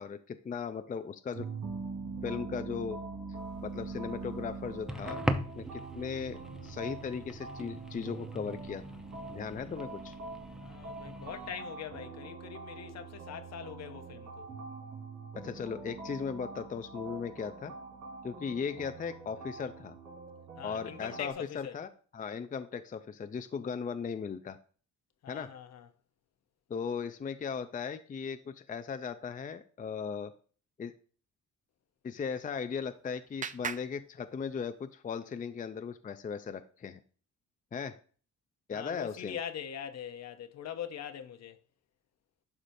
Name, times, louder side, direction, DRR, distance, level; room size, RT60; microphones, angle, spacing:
voice 1, 0.0-1.5 2.2-3.0 3.6-5.3 5.5-8.8 9.3-10.1 15.4-17.7 18.2-20.0 20.6-21.9 22.1-24.6 25.3-25.5 26.7-30.3 30.8-30.9 32.0-37.0 37.7-38.0 38.7-39.4, left 6 dB, 25° left, 0.5 m, -37 dB
sound 1, 1.3-21.3, right 4 dB, 90° right, 3.2 m, -44 dB
sound 2, 3.4-11.5, equal, ahead, 0.8 m, -41 dB
voice 2, 10.6-14.5 20.6-21.8 25.2-25.9 38.7-41.6, left 9 dB, 60° left, 0.9 m, -42 dB
Clapping, 32.3-34.9, right 7 dB, 25° right, 0.4 m, -43 dB
11.5 x 4.9 x 2.7 m
cardioid pair, 90°, 30 cm